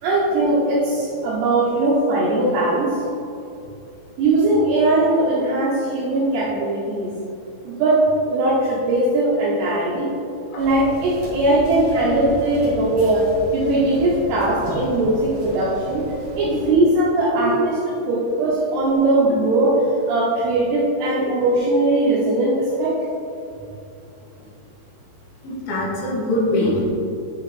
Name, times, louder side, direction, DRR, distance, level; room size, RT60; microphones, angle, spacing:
voice 1, 0.0-3.0 4.2-7.1 7.6-8.0 8.3-10.1 10.6-13.2 13.5-16.0 16.4-17.7 18.1-19.7 20.1-23.0, right 2 dB, 75° right, -7 dB, 2.9 m, -19 dB
sound 1, 10.6-16.8, right 1 dB, 55° right, 1.6 m, -36 dB
voice 2, 25.4-26.9, left 1 dB, 70° left, -5 dB, 2.9 m, -23 dB
8.1 x 5.1 x 3.8 m, 2.6 s
omnidirectional pair, 5.2 m